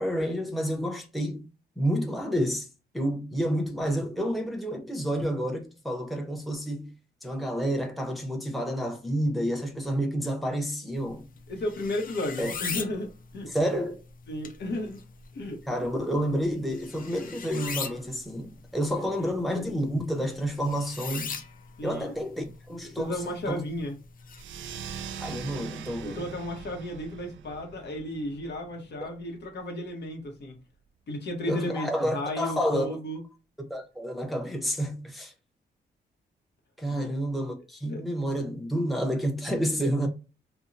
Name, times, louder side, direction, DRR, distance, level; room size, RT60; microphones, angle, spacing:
voice 1, 0.0-1.5 1.8-2.7 2.9-6.9 7.2-11.2 12.4-12.6 13.5-14.0 15.7-21.4 21.8-23.2 23.5-23.6 25.2-26.2 31.5-33.0 33.7-35.3 36.8-40.1, equal, ahead, 0.7 m, -29 dB
sound 1, 11.0-24.4, left 6 dB, 45° left, 0.5 m, -41 dB
voice 2, 11.5-13.5 14.3-15.0 15.3-15.6 19.2-19.3 21.8-22.1 23.0-24.0 26.0-30.5 31.1-33.2 36.9-37.0 37.9-38.0, left 1 dB, 60° left, 0.9 m, -34 dB
sound 2, 24.3-29.4, right 7 dB, 80° right, 0.4 m, -42 dB
2.7 x 2.0 x 2.5 m
cardioid pair, 75°, 20 cm